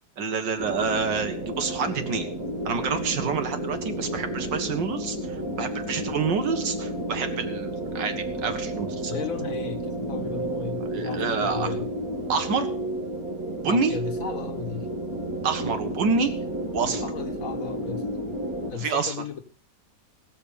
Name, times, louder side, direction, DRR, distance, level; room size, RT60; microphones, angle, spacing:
voice 1, 0.2-2.3 2.7-9.1 10.9-11.7 12.3-12.7 13.6-13.9 15.4-16.3 16.7-17.1 18.7-19.1, right 5 dB, 80° right, 7 dB, 2.2 m, -27 dB
sound 1, 0.6-18.7, right 1 dB, 55° right, 2.3 m, -31 dB
voice 2, 9.0-11.9 13.6-14.9 16.0-16.2 17.0-18.0 18.7-19.4, left 7 dB, 50° left, 7 dB, 1.7 m, -35 dB
19.0 x 7.4 x 5.0 m, 0.42 s
omnidirectional pair, 1.9 m